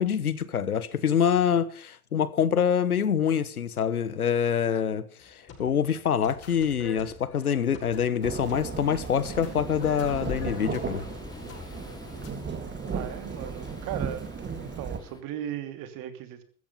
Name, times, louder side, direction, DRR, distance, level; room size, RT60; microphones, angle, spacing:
voice 1, 0.0-11.0, left 8 dB, 85° left, 1.2 m, -26 dB
sound 1, 5.2-12.3, left 6 dB, 35° left, 6.8 m, -46 dB
sound 2, 8.2-15.2, left 2 dB, 10° left, 2.9 m, -44 dB
Thunderstorm / Rain, 8.2-15.0, right 6 dB, 25° right, 2.2 m, -36 dB
voice 2, 12.9-14.3 14.6-16.4, right 11 dB, 50° right, 3.0 m, -37 dB
14.5 x 14.0 x 5.7 m
hypercardioid pair, 80°, 43 cm